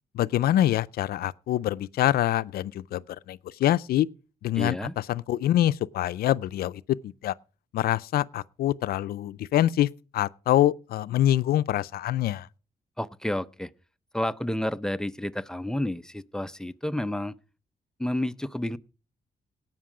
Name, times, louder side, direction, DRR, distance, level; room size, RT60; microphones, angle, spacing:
voice 1, 0.1-4.1 4.4-4.8 5.1-7.3 7.7-9.9 10.1-12.5, left 13 dB, 85° left, 0.4 m, -25 dB
voice 2, 4.5-4.9 13.0-13.7 14.1-17.3 18.0-18.8, left 1 dB, 5° left, 0.6 m, -30 dB
18.0 x 6.1 x 4.9 m
cardioid pair, 85°, 15 cm